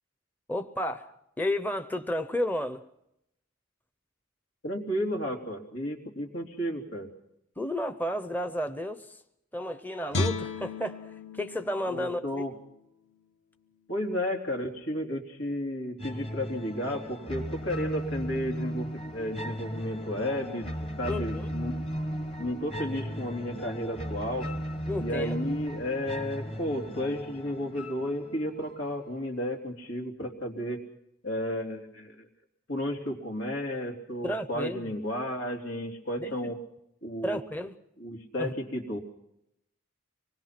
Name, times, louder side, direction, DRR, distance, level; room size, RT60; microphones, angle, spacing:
voice 1, 0.5-2.8 7.6-9.1 9.5-11.0 11.3-12.4 21.1-21.5 24.9-25.4 34.2-34.9 36.2-36.3 37.2-37.7 38.4-38.5, left 1 dB, 10° left, 0.8 m, -32 dB
voice 2, 4.6-7.1 11.9-12.5 13.9-20.7 21.0-21.7 22.4-24.5 25.0-30.8 31.2-32.3 32.7-36.6 37.0-37.4 38.0-39.0, left 1 dB, 85° left, 3.5 m, -33 dB
Guitar, 10.1-13.3 13.7-13.8, left 2 dB, 60° left, 1.6 m, -35 dB
sound 1, 16.0-29.0, equal, 30° left, 1.5 m, -36 dB
25.5 x 20.5 x 5.9 m
head